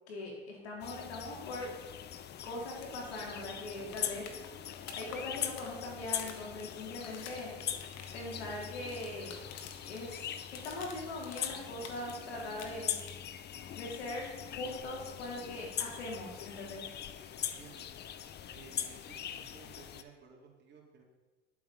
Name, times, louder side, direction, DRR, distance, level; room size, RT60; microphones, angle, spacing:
voice 1, 0.1-1.7 2.4-4.3 4.9-7.5 8.1-9.4 9.8-13.0 13.7-16.8, left 2 dB, 80° left, -2 dB, 4.3 m, -41 dB
sound 1, 0.8-20.0, left 9 dB, 30° left, 0.8 m, -42 dB
sound 2, 2.8-2.9 3.2-3.3 3.5-10.0 10.3-12.1 12.4-13.4 15.4-15.5, left 7 dB, 50° left, 1.7 m, -50 dB
voice 2, 17.4-17.9 18.5-21.0, right 5 dB, 30° right, -1 dB, 3.0 m, -56 dB
11.0 x 8.1 x 5.5 m, 1.2 s
hypercardioid pair, 100°, 32 cm